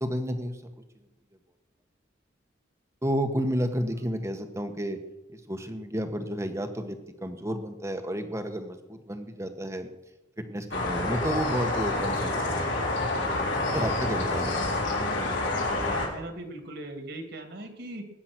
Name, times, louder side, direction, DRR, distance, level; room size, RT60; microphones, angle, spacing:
voice 1, 0.0-0.6 3.0-5.0 5.3-9.9 10.4-12.8 13.7-14.6, equal, 15° right, 7 dB, 1.3 m, -31 dB
sound 1, 10.7-16.1, left 2 dB, 65° left, 3.9 m, -28 dB
voice 2, 15.8-18.0, right 2 dB, 55° right, 5 dB, 2.4 m, -39 dB
19.5 x 9.7 x 6.1 m, 0.96 s
head